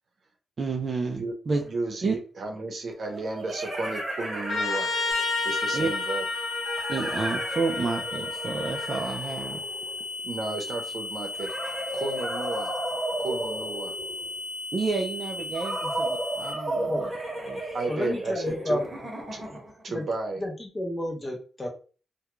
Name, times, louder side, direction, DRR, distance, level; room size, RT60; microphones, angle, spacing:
voice 1, 0.6-1.6 2.0-2.2 5.7-5.9 6.9-9.6 14.7-17.1 17.5-17.6, right 4 dB, 35° right, 2 dB, 0.3 m, -30 dB
sound 1, 1.6-1.7 3.0-5.4 6.6-10.1 11.3-14.4 15.5-19.8, right 1 dB, 10° right, 1.0 m, -34 dB
voice 2, 1.7-4.9 5.4-6.2 10.2-12.7 13.2-13.9 17.7-18.8 19.3-19.4 19.8-20.4, right 3 dB, 55° right, 2 dB, 0.7 m, -33 dB
Trumpet, 4.5-9.0, left 3 dB, 55° left, 0.9 m, -31 dB
sound 2, 5.1-16.5, left 2 dB, 90° left, 0.5 m, -36 dB
voice 3, 17.9-18.9 19.4-19.6 19.9-20.1 20.4-21.7, left 1 dB, 20° left, 1 dB, 0.6 m, -31 dB
2.3 x 2.2 x 3.0 m, 0.37 s
wide cardioid pair, 175°, 0 cm